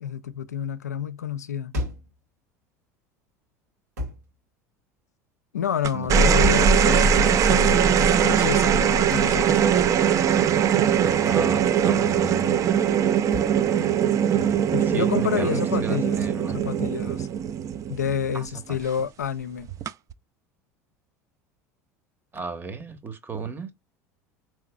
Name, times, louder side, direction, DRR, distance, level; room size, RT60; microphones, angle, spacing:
voice 1, 0.0-1.7 5.5-9.7 14.7-16.3 16.5-17.3 17.9-19.7, left 8 dB, 90° left, 0.4 m, -29 dB
sound 1, 1.7-2.2 4.0-4.3 6.4-6.8 9.1-9.4 11.2-11.5 13.3-13.6, left 1 dB, 80° right, 1.5 m, -31 dB
sound 2, 5.8-18.5 19.7-20.1, right 7 dB, 40° right, 0.4 m, -21 dB
voice 2, 5.9-6.3 11.0-12.6 14.3-16.6 18.3-18.5 22.3-23.7, right 4 dB, 25° right, 0.9 m, -34 dB
3.9 x 3.2 x 2.2 m
hypercardioid pair, 75°, 9 cm